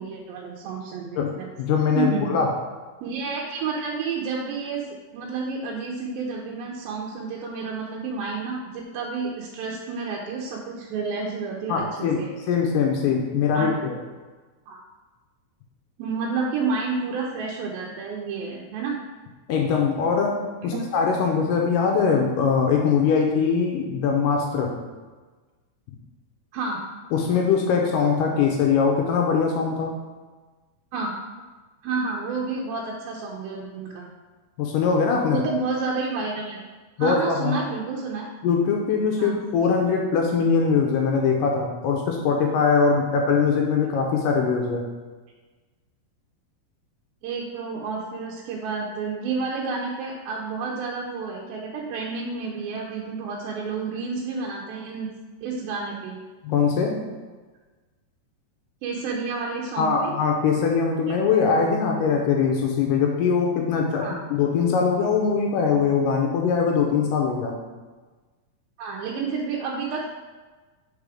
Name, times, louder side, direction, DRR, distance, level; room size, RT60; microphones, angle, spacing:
voice 1, 0.0-1.1 1.4-1.5 2.0-2.4 3.0-4.8 5.1-12.3 13.5-13.7 14.7-14.8 16.0-19.0 20.6-20.8 26.5-26.8 30.9-31.1 31.8-34.1 35.3-36.6 37.0-38.3 39.2-39.4 47.2-55.1 55.4-56.2 58.8-60.1 64.0-64.2 68.8-70.1, right 4 dB, 85° right, -2 dB, 2.4 m, -30 dB
voice 2, 1.6-2.5 11.7-12.2 12.5-14.0 19.5-24.7 27.1-29.9 34.6-35.4 37.0-37.6 38.4-44.8 56.4-57.0 59.8-67.6, left 5 dB, 80° left, 1 dB, 2.0 m, -22 dB
5.1 x 4.7 x 4.8 m, 1.3 s
omnidirectional pair, 4.1 m